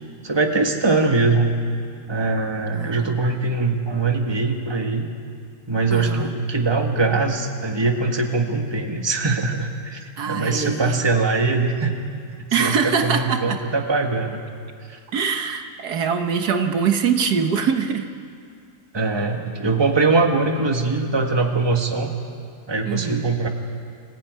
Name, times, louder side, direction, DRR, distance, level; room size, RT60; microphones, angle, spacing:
voice 1, 0.2-1.5 2.1-5.1 5.7-11.9 12.6-14.4 14.9-15.0 18.9-22.1 22.7-23.5, right 3 dB, 15° right, 3 dB, 1.6 m, -22 dB
voice 2, 2.7-3.2 5.9-6.3 10.2-11.0 12.5-13.6 15.1-18.1 22.8-23.3, right 6 dB, 75° right, 6 dB, 1.7 m, -23 dB
25.0 x 16.5 x 9.4 m, 2.2 s
omnidirectional pair, 1.7 m